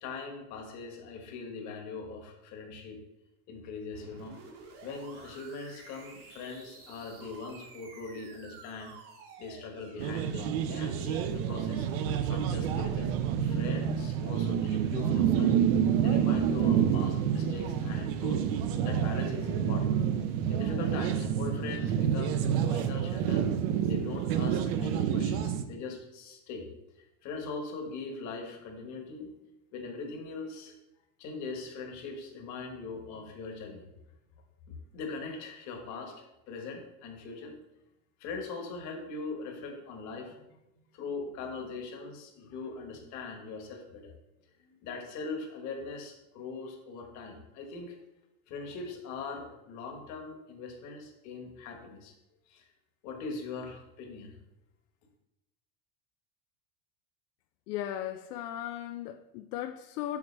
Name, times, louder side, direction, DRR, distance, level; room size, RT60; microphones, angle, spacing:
voice 1, 0.0-3.0 3.5-4.4 4.8-8.9 9.4-11.9 12.3-15.5 16.0-18.4 18.8-20.0 20.5-23.5 23.9-26.7 27.0-29.3 29.7-30.7 31.2-33.8 34.7-37.6 38.2-40.6 40.9-44.1 44.6-48.0 48.5-52.1 52.5-52.7 53.0-54.4, left 4 dB, 35° left, 1.4 m, -41 dB
sound 1, 3.9-13.6, right 4 dB, 70° right, 1.9 m, -50 dB
sound 2, 10.0-25.6, right 8 dB, 40° right, 0.4 m, -28 dB
voice 2, 57.7-60.2, left 12 dB, 75° left, 0.6 m, -37 dB
7.2 x 6.0 x 3.3 m
supercardioid pair, 165°, 46 cm